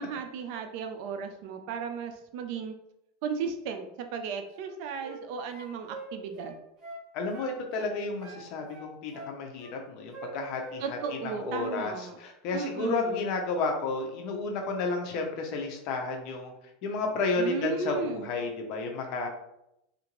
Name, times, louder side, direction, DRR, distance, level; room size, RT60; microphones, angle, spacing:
voice 1, 0.0-2.7 3.2-6.6 10.8-12.2 12.5-13.3 17.4-18.3, right 6 dB, 55° right, 6 dB, 0.4 m, -35 dB
sound 1, 4.5-5.2 5.5-7.0 7.3-8.4 8.7-9.8 10.1-11.2 11.5-11.8, right 2 dB, 30° right, 0.9 m, -44 dB
voice 2, 7.1-11.0 11.4-16.5 16.8-19.3, left 3 dB, 50° left, 2 dB, 0.6 m, -32 dB
2.8 x 2.5 x 2.9 m, 0.84 s
supercardioid pair, 150°, 0 cm